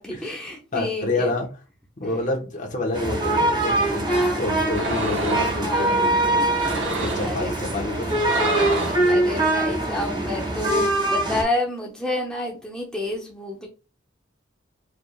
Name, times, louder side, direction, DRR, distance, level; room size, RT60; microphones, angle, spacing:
voice 1, 0.0-1.3 4.0-4.4 5.5-7.5 9.1-13.7, left 2 dB, 5° left, -3 dB, 0.8 m, -30 dB
voice 2, 0.7-1.5 2.0-4.0 4.3-6.4 7.0-8.7 9.0-9.2, left 2 dB, 40° left, 0 dB, 1.5 m, -28 dB
sound 1, 2.9-11.4, right 1 dB, 25° right, 1.9 m, -23 dB
sound 2, 4.7-5.6 6.5-7.4 8.1-9.1, right 2 dB, 70° right, 1.2 m, -28 dB
4.9 x 3.5 x 2.5 m, 0.33 s
head